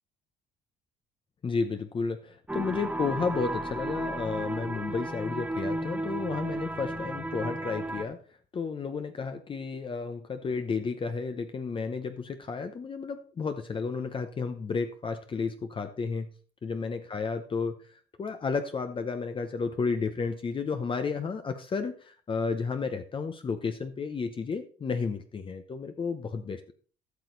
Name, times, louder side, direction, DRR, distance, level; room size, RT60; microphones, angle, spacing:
voice 1, 1.4-8.2 8.5-16.3 16.6-26.7, left 5 dB, 30° left, 8 dB, 0.8 m, -32 dB
sound 1, 2.5-8.0, right 2 dB, 10° right, 1.0 m, -34 dB
13.0 x 6.4 x 3.9 m, 0.41 s
cardioid pair, 110°, 17 cm